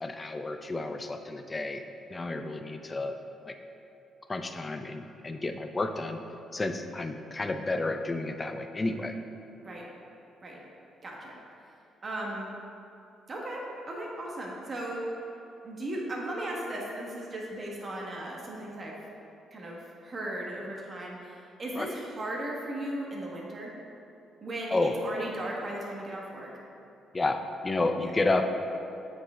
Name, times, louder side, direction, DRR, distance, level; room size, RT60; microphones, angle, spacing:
voice 1, 0.0-1.8 2.1-3.2 3.4-3.5 4.3-6.2 6.5-9.1 21.7-21.9 24.7-25.0 27.1-28.5, left 2 dB, 25° left, 7 dB, 0.5 m, -31 dB
voice 2, 11.0-11.4 12.0-12.5 13.3-15.1 15.6-19.0 19.5-23.7 24.4-26.5, right 1 dB, 40° right, -2 dB, 1.6 m, -36 dB
8.0 x 5.5 x 3.7 m, 2.8 s
cardioid pair, 90°, 0 cm